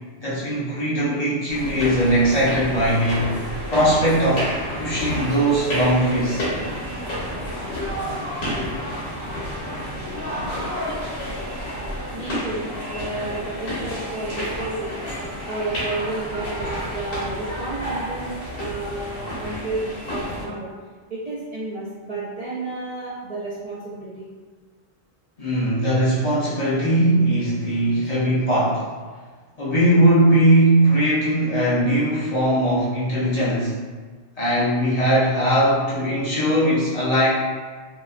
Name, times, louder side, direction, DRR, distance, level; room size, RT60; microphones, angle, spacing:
voice 1, 0.2-3.4 3.7-4.5 4.8-6.4 25.4-28.8 29.6-33.7 34.4-37.3, right 1 dB, 45° left, -9 dB, 0.6 m, -20 dB
sound 1, 1.5-20.4, equal, 60° left, 1.1 m, -30 dB
voice 2, 12.1-15.0 15.5-20.7 21.1-24.3 28.0-28.1, right 2 dB, 50° right, -10 dB, 0.4 m, -31 dB
2.7 x 2.1 x 2.4 m, 1.5 s
omnidirectional pair, 1.1 m